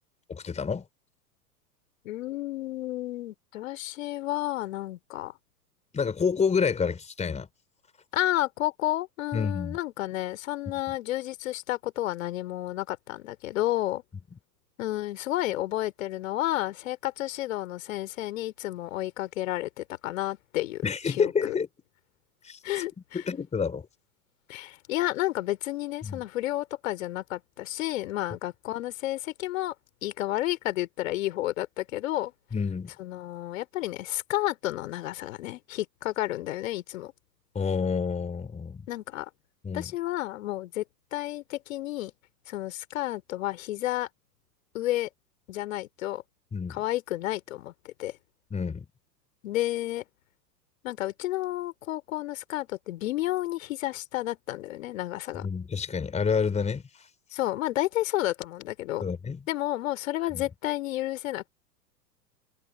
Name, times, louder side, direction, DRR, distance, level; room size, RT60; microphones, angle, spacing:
voice 1, 0.3-0.9 5.9-7.5 9.3-9.8 20.8-21.7 22.4-22.6 23.1-23.9 26.0-26.2 32.5-32.9 37.5-38.9 39.6-39.9 46.5-46.8 48.5-48.8 55.4-56.8 59.0-59.4 60.3-60.4, left 6 dB, 15° left, 4.3 m, -28 dB
voice 2, 2.0-5.3 8.1-14.0 14.8-21.6 22.6-23.2 24.5-29.7 30.0-32.3 33.0-37.1 38.9-39.3 39.7-40.9 41.1-42.1 42.5-44.1 44.7-45.1 45.5-46.2 46.7-48.2 49.4-50.0 50.8-55.5 57.3-59.0 59.5-61.5, left 15 dB, 50° left, 3.5 m, -31 dB
figure-of-eight pair, 95°, 49 cm